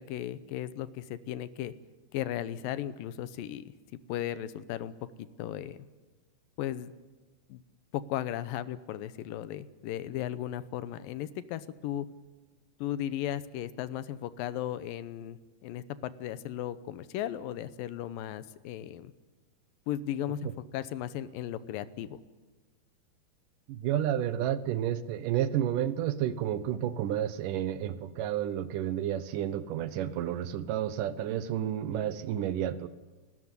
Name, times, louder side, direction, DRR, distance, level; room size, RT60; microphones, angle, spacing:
voice 1, 0.0-1.7 2.1-3.6 4.1-5.8 6.6-6.9 7.5-7.6 7.9-12.1 12.8-19.1 19.9-22.2, left 11 dB, 75° left, 14 dB, 2.3 m, -36 dB
voice 2, 23.7-32.9, right 11 dB, 70° right, 13 dB, 2.2 m, -31 dB
30.0 x 13.5 x 9.6 m, 1.3 s
omnidirectional pair, 4.6 m